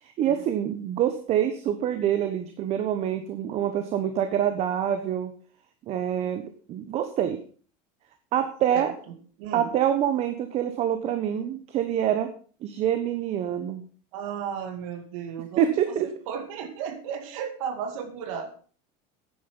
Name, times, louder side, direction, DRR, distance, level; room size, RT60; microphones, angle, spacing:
voice 1, 0.0-5.3 5.9-6.4 6.7-7.4 8.3-8.9 9.5-12.3 12.6-13.8 15.6-16.1, right 10 dB, 40° right, 8 dB, 1.1 m, -26 dB
voice 2, 8.7-9.7 14.1-18.6, right 7 dB, 80° right, 7 dB, 2.3 m, -35 dB
9.9 x 9.4 x 5.4 m, 0.42 s
cardioid pair, 155°, 17 cm